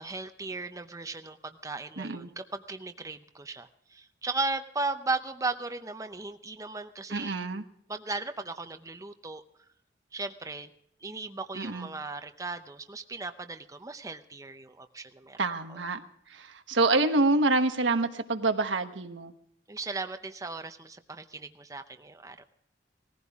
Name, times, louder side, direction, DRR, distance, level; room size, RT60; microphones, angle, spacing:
voice 1, 0.0-7.4 7.9-9.4 10.1-10.7 11.0-15.4 15.7-15.8 19.7-22.4, right 3 dB, 20° right, 8 dB, 0.7 m, -36 dB
voice 2, 2.0-2.3 7.1-7.6 11.5-11.9 15.4-16.0 16.3-19.3, right 3 dB, 85° right, 7 dB, 1.2 m, -27 dB
19.0 x 15.0 x 3.6 m, 0.72 s
head